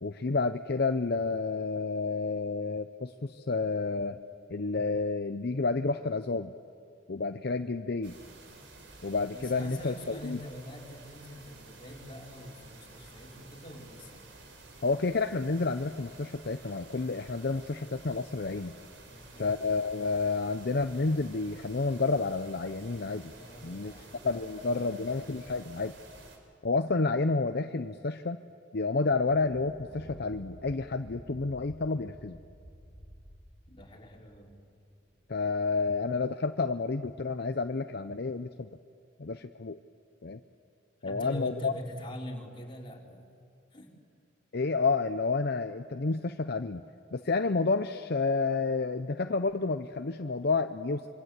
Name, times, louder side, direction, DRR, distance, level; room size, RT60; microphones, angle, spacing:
voice 1, 0.0-4.2 4.5-6.5 7.1-8.2 9.0-10.4 14.8-18.7 19.4-23.3 23.6-23.9 24.2-25.9 26.6-28.4 28.7-32.4 35.3-38.7 39.2-39.8 40.2-40.4 41.0-41.7 44.5-46.8 47.1-51.1, left 3 dB, 55° left, 8 dB, 0.7 m, -30 dB
sound 1, 8.0-26.4, right 2 dB, 65° right, 4.2 m, -52 dB
voice 2, 9.3-14.3 19.0-19.6 23.4-25.2 33.7-34.5 41.0-43.2 43.7-43.9, equal, 25° left, -1 dB, 3.7 m, -44 dB
Thunder, 29.1-35.6, equal, 25° right, 5.0 m, -52 dB
26.0 x 24.5 x 8.2 m, 2.5 s
head